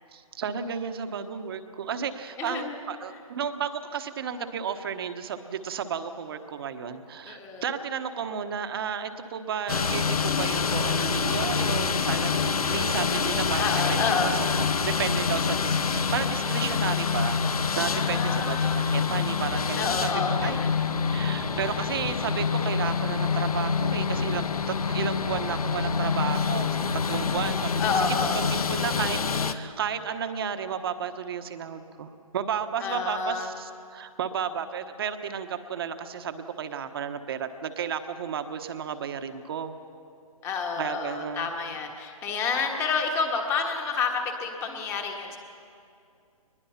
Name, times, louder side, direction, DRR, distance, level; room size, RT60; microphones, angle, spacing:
voice 1, 0.1-14.3 14.6-20.6 21.1-27.8 28.2-39.8 40.8-41.5, right 7 dB, 40° right, 9 dB, 1.2 m, -33 dB
voice 2, 2.4-2.8 7.2-7.6 13.6-14.3 17.8-18.8 19.8-20.7 27.1-28.4 32.8-33.5 40.4-45.4, left 5 dB, 15° left, 3 dB, 1.5 m, -29 dB
sound 1, 9.7-29.5, left 5 dB, 75° left, 1.1 m, -26 dB
22.5 x 21.0 x 5.8 m, 2.5 s
hypercardioid pair, 155°, 19 cm